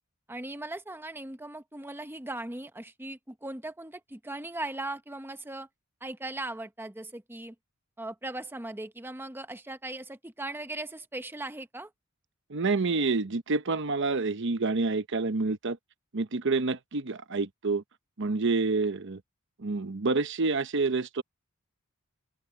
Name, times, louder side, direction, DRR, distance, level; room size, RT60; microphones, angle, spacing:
voice 1, 0.3-5.7 6.0-7.5 8.0-11.9, right 2 dB, 10° right, 0.8 m, -38 dB
voice 2, 12.5-15.8 16.1-17.8 18.2-19.2 19.6-21.2, right 3 dB, 60° right, 0.9 m, -28 dB
head